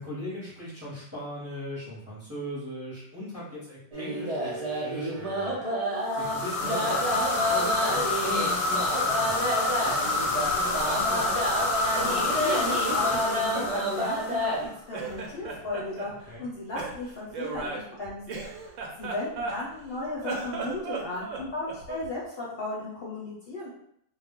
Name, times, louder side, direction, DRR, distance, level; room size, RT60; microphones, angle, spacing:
voice 1, 0.0-5.7 6.1-11.3 16.2-16.5, equal, 15° right, -8 dB, 0.7 m, -39 dB
sound 1, 3.9-14.7, right 1 dB, 55° right, 0.4 m, -30 dB
sound 2, 6.1-14.6, left 3 dB, 85° left, 1.1 m, -28 dB
Laughter, 10.5-12.8 13.1-14.6 14.9-16.1 16.7-19.8 20.2-22.1, right 4 dB, 70° right, 0.9 m, -37 dB
voice 2, 11.9-14.5 14.9-18.4 19.0-23.7, left 2 dB, 55° left, -6 dB, 0.8 m, -35 dB
2.3 x 2.1 x 3.5 m, 0.72 s
omnidirectional pair, 1.4 m